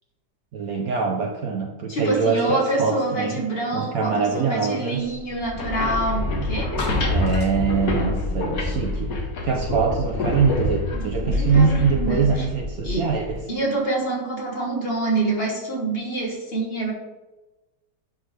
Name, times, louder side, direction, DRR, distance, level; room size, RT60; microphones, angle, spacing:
voice 1, 0.5-3.4 3.7-5.0 7.1-13.4, right 5 dB, 65° right, 2 dB, 0.9 m, -23 dB
voice 2, 1.9-6.7 10.9-12.5 12.8-13.1 13.5-16.9, right 2 dB, 40° left, -2 dB, 1.2 m, -26 dB
sound 1, 5.4-13.4, left 2 dB, 55° left, 1.5 m, -26 dB
10.5 x 3.6 x 3.2 m, 1.1 s
omnidirectional pair, 2.0 m